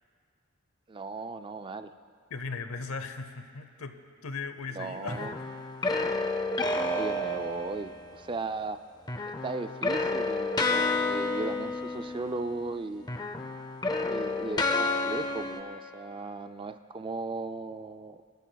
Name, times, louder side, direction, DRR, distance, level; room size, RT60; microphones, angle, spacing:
voice 1, 0.9-1.9 4.7-5.3 6.7-8.8 9.4-13.1 14.1-18.2, right 3 dB, 25° right, 9 dB, 0.3 m, -37 dB
voice 2, 2.3-5.3 5.8-6.0, left 4 dB, 75° left, 9 dB, 0.8 m, -38 dB
sound 1, 5.1-8.2 9.1-12.8 13.0-15.6, left 2 dB, 20° left, 0.6 m, -30 dB
29.0 x 13.0 x 2.3 m, 2.1 s
head